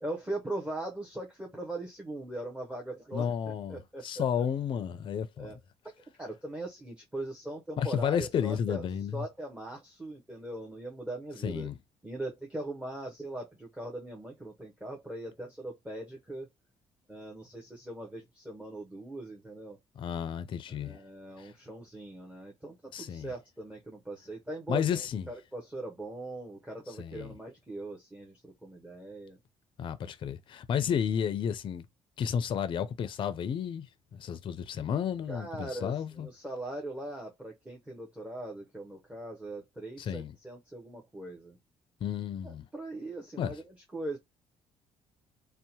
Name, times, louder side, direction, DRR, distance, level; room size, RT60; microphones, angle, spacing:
voice 1, 0.0-4.5 5.4-5.6 6.2-8.8 9.1-11.7 12.0-16.5 17.1-19.8 20.7-29.4 35.3-41.6 42.4-44.2, right 1 dB, 10° right, 0.6 m, -40 dB
voice 2, 3.1-5.5 7.8-9.2 11.4-11.8 20.0-21.0 21.4-21.5 22.9-23.3 24.7-25.3 27.0-27.3 29.8-31.8 32.2-33.9 34.1-36.3 40.0-40.3 42.0-42.7 43.4-43.6, left 8 dB, 45° left, 0.4 m, -32 dB
2.6 x 2.1 x 2.8 m
cardioid pair, 105°, 11 cm